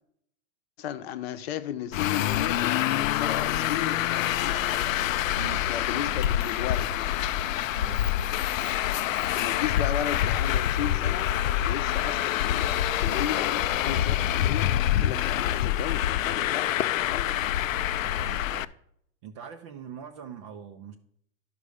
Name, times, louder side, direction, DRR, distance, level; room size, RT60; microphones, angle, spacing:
voice 1, 0.8-2.8 3.1-4.7 5.7-7.2 9.2-11.3 11.6-14.7 15.0-17.3, left 10 dB, 50° left, 0.8 m, -34 dB
Traffic noise roadway noise, 1.9-18.7, left 12 dB, 75° left, 0.5 m, -26 dB
voice 2, 7.7-8.1 18.0-18.8 19.2-21.0, right 7 dB, 25° right, 0.4 m, -42 dB
11.5 x 5.3 x 4.9 m
hypercardioid pair, 135°, 40 cm